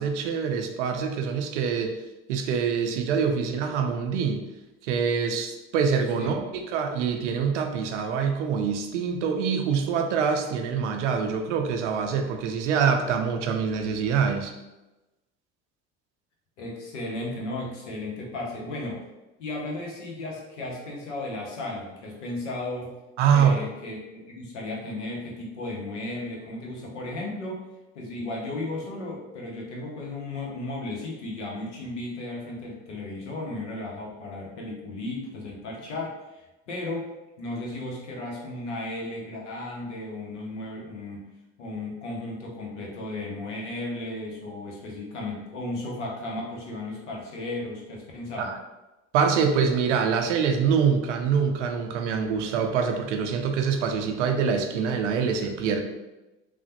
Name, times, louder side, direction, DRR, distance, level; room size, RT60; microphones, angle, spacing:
voice 1, 0.0-2.0 2.3-4.4 4.8-14.5 23.2-23.6 48.4-48.6 49.1-55.8, right 6 dB, 80° right, 4 dB, 0.5 m, -25 dB
voice 2, 16.6-19.0 19.4-22.9 23.3-27.6 27.9-37.1 37.4-41.3 41.6-48.5, left 2 dB, 85° left, -1 dB, 0.7 m, -35 dB
3.2 x 2.0 x 2.8 m, 1.0 s
hypercardioid pair, 60°, 35 cm